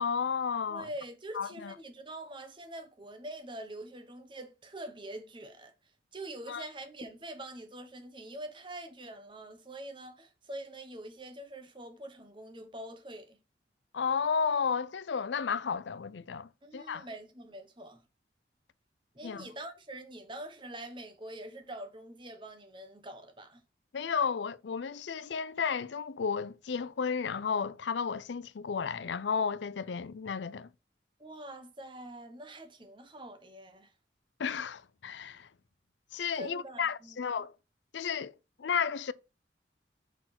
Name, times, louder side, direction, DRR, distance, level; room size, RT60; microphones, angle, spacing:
voice 1, 0.0-0.9 1.3-1.7 6.5-6.6 13.9-17.1 19.2-19.5 23.9-30.7 34.4-35.5 36.1-37.5 37.9-38.3 38.6-39.1, left 6 dB, 85° left, 0.5 m, -33 dB
voice 2, 0.7-5.7 6.1-13.4 16.6-18.0 19.1-23.6 31.2-33.9 36.4-37.2, right 1 dB, 25° right, 1.2 m, -45 dB
5.9 x 4.5 x 5.7 m
head